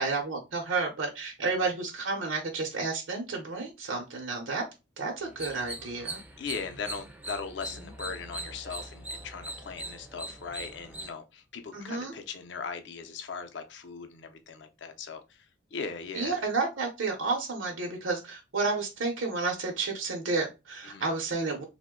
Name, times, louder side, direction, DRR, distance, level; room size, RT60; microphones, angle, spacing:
voice 1, 0.0-4.6 5.0-6.2 11.7-12.1 16.1-21.6, right 3 dB, 85° right, 0.7 m, -31 dB
sound 1, 5.3-11.1, right 1 dB, 10° right, 0.3 m, -41 dB
voice 2, 6.4-15.4 15.7-16.3 20.8-21.2, left 5 dB, 60° left, 0.5 m, -39 dB
2.9 x 2.1 x 3.5 m
head